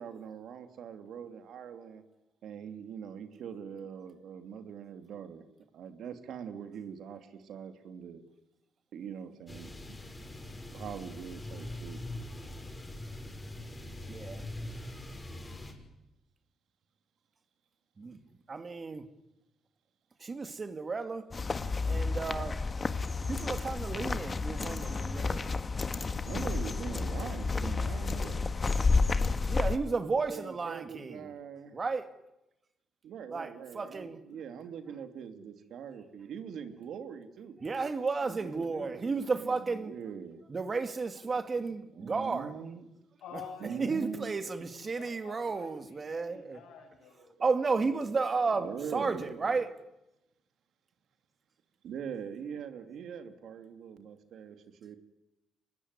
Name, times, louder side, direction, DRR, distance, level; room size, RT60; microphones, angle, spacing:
voice 1, 0.0-2.0 2.4-5.4 5.7-8.2 8.9-9.7 10.7-12.0 18.1-18.2 26.2-28.5 30.3-31.8 33.0-37.6 38.2-39.0 39.3-40.4 41.9-42.9 43.6-44.3 47.4-47.5 48.6-49.7 51.8-55.0, right 7 dB, 70° right, 2.8 m, -42 dB
sound 1, 9.5-15.7, left 1 dB, 15° left, 6.1 m, -42 dB
voice 2, 18.5-19.0 20.2-21.3 21.9-22.6 23.3-25.5 29.5-31.3 31.7-32.1 33.3-33.5 33.7-34.2 37.6-39.9 40.5-42.5 43.8-46.6 47.4-49.7, right 4 dB, 35° right, 2.3 m, -33 dB
sound 2, 21.3-29.8, left 4 dB, 30° left, 1.6 m, -31 dB
voice 3, 43.2-43.9 44.8-47.6 48.9-49.1, left 6 dB, 85° left, 7.9 m, -49 dB
25.0 x 20.0 x 9.7 m
cardioid pair, 90°, 0 cm